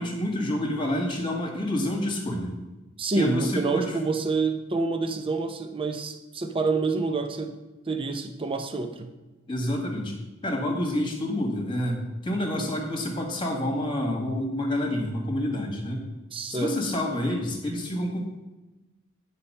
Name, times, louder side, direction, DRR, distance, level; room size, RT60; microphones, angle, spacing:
voice 1, 0.0-2.5 3.1-3.9 9.5-10.1 10.4-16.1 16.5-18.2, left 1 dB, 25° left, 1 dB, 1.6 m, -28 dB
voice 2, 3.0-7.6 7.9-9.1 16.3-16.7, right 3 dB, 25° right, 6 dB, 0.6 m, -27 dB
9.8 x 4.3 x 5.4 m, 1.1 s
head